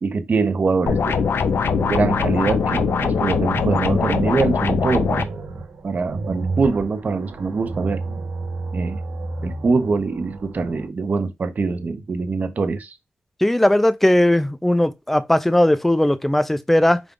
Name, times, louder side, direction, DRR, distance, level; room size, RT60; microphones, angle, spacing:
voice 1, 0.0-1.2 1.7-5.3 5.8-8.0 8.7-9.0 9.4-12.9, right 4 dB, 45° right, 0.6 m, -23 dB
sound 1, 0.9-5.2, left 6 dB, 70° left, 0.4 m, -21 dB
sound 2, 1.0-10.9, right 3 dB, 90° right, 0.9 m, -31 dB
voice 2, 13.4-17.0, left 1 dB, 5° left, 0.3 m, -18 dB
5.0 x 2.3 x 3.6 m
wide cardioid pair, 150°, 4 cm